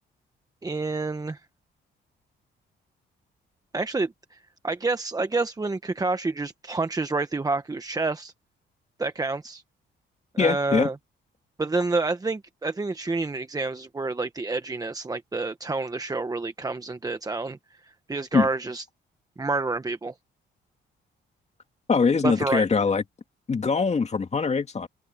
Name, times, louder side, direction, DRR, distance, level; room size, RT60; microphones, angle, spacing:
voice 1, 0.6-1.4 3.7-4.4 4.6-8.3 9.0-9.6 10.3-10.9 11.6-17.6 17.8-18.8 19.4-20.1 22.2-22.7, right 3 dB, 20° right, 1.1 m, -28 dB
voice 2, 10.4-10.9 18.3-18.5 21.9-23.0 23.5-24.9, left 5 dB, 35° left, 2.4 m, -22 dB
open air
cardioid pair, 90°, 20 cm